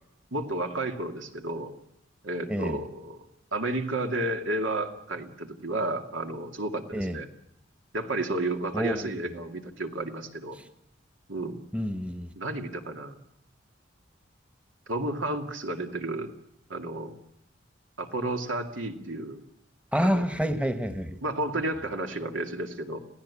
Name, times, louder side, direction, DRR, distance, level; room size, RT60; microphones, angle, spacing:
voice 1, 0.3-1.7 2.2-3.2 3.5-7.3 7.9-10.6 11.3-11.6 12.4-13.2 14.9-16.3 16.7-17.1 18.0-19.4 20.0-20.3 21.2-23.0, right 2 dB, 85° right, 5 dB, 2.5 m, -32 dB
voice 2, 8.7-9.3 11.7-12.3 19.9-21.2, equal, 5° right, 9 dB, 1.2 m, -28 dB
27.5 x 16.5 x 8.5 m, 0.82 s
head